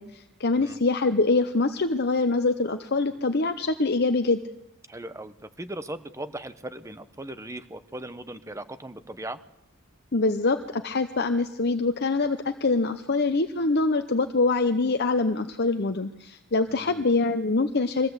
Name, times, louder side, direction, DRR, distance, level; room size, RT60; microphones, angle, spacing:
voice 1, 0.0-4.4 10.1-18.1, left 3 dB, 50° left, 7 dB, 0.8 m, -24 dB
voice 2, 4.9-9.4 16.7-17.1, right 1 dB, 15° right, 11 dB, 1.0 m, -38 dB
23.0 x 15.5 x 8.1 m, 0.87 s
head